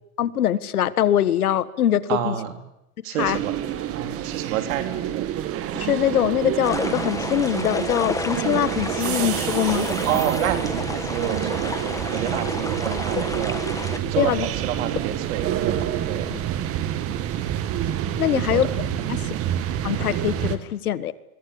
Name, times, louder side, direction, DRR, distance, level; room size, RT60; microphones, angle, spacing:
voice 1, 0.2-2.3 3.2-3.4 5.7-9.9 14.2-14.5 16.3-16.4 18.2-18.7 19.1-19.2 19.8-21.1, left 11 dB, 90° left, 15 dB, 1.6 m, -23 dB
voice 2, 2.1-2.6 3.0-3.6 3.9-5.3 10.0-11.8 12.1-13.6 14.1-16.3 18.3-18.7 19.0-19.5, right 10 dB, 65° right, 6 dB, 3.9 m, -29 dB
sound 1, 3.2-20.6, right 11 dB, 35° right, 2.0 m, -27 dB
sound 2, 6.6-14.0, left 3 dB, 5° left, 1.4 m, -31 dB
25.5 x 22.0 x 8.6 m, 0.84 s
supercardioid pair, 135°, 43 cm